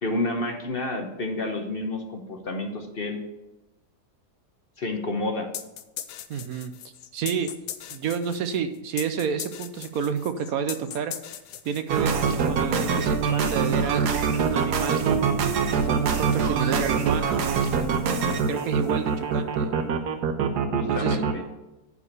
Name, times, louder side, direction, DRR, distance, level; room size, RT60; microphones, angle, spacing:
voice 1, 0.0-3.2 4.8-5.5 20.7-21.4, left 2 dB, 40° left, 4 dB, 1.1 m, -29 dB
sound 1, 5.5-12.2, left 10 dB, 90° left, 1.3 m, -39 dB
voice 2, 6.3-6.7 7.1-7.5 7.9-11.1 11.6-15.4 15.9-17.4 18.5-19.8 20.9-21.2, right 7 dB, 70° right, 9 dB, 1.1 m, -29 dB
sound 2, 11.9-21.3, right 6 dB, 90° right, 1.5 m, -24 dB
9.7 x 4.9 x 6.7 m, 1.0 s
omnidirectional pair, 1.7 m